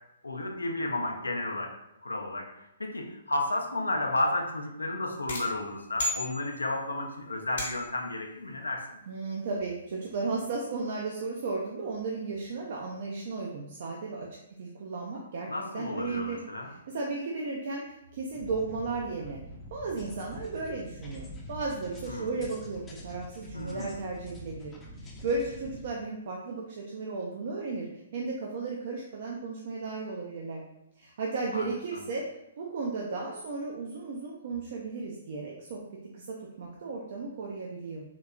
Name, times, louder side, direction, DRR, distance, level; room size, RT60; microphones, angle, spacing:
voice 1, 0.2-1.7 2.0-2.5 2.8-8.9 15.5-16.7 22.1-22.3 23.5-24.0 31.5-31.6, left 2 dB, 75° left, 2 dB, 0.4 m, -32 dB
sound 1, 5.3-6.9 7.6-8.1, left 1 dB, 55° left, 0.9 m, -35 dB
voice 2, 9.1-14.3 14.6-15.5 15.7-19.4 19.7-24.7 25.0-30.6 31.0-32.2 32.6-35.8 36.1-38.0, right 3 dB, 50° right, -2 dB, 0.4 m, -35 dB
sound 2, 18.3-25.9, equal, 15° left, 0.5 m, -45 dB
3.6 x 2.7 x 2.3 m, 0.85 s
figure-of-eight pair, 120°, 0 cm